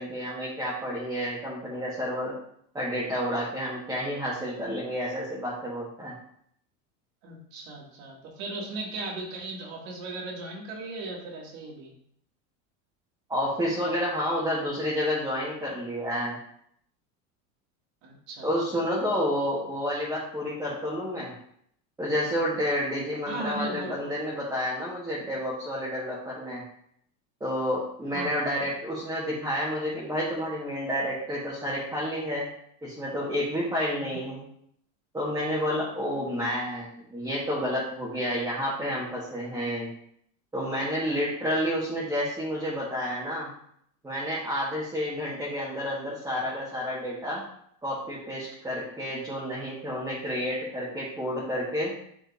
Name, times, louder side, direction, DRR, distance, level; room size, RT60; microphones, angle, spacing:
voice 1, 0.0-2.3 2.7-6.1 13.3-16.4 18.4-21.3 22.0-26.6 27.4-32.5 32.8-34.5 35.1-39.9 40.5-43.5 44.0-47.4 47.8-51.9, equal, 10° right, -7 dB, 1.6 m, -30 dB
voice 2, 7.2-11.9 18.0-18.8 23.3-24.4 28.1-28.7 34.0-34.2, right 2 dB, 70° right, -2 dB, 2.5 m, -37 dB
9.4 x 4.3 x 2.7 m, 0.69 s
supercardioid pair, 130°, 42 cm